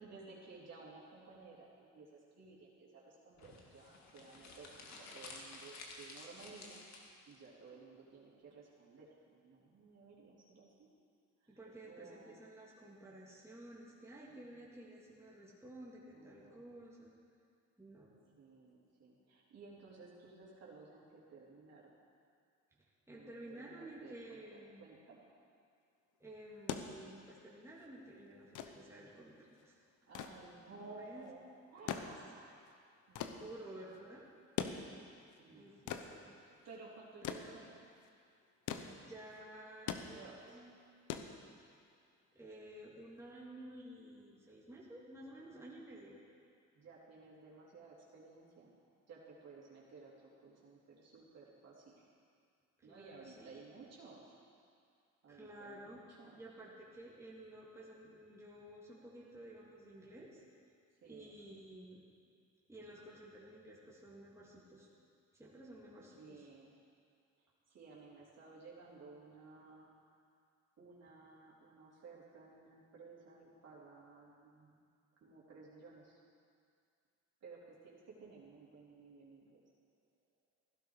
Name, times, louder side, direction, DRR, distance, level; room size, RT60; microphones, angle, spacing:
voice 1, 0.0-10.9 11.4-11.6 11.9-12.4 14.3-14.4 16.1-16.6 18.4-21.9 23.1-25.3 30.0-33.5 35.4-36.1 36.6-37.8 39.9-40.6 45.3-45.7 46.7-48.8 49.1-52.1 52.8-54.4 55.2-56.4 61.0-61.4 66.2-66.7 67.4-70.0 70.8-74.8 75.2-76.2 77.4-79.6, right 3 dB, 55° right, -5 dB, 3.5 m, -56 dB
sound 1, 3.4-7.4, left 3 dB, 65° left, 2.1 m, -52 dB
voice 2, 11.5-17.1 17.8-18.1 23.1-24.9 26.2-29.3 29.6-29.8 30.8-31.3 31.9-32.1 33.3-34.3 35.5-36.3 37.4-37.6 38.7-40.8 42.3-46.2 52.8-53.5 55.3-56.0 56.4-60.4 61.0-62.0 62.7-64.9 65.3-66.5, right 1 dB, 10° right, -6 dB, 2.9 m, -53 dB
sound 2, 26.4-42.0 43.2-43.3, left 8 dB, 90° left, 0.9 m, -45 dB
16.0 x 11.5 x 4.9 m, 2.2 s
cardioid pair, 90°, 30 cm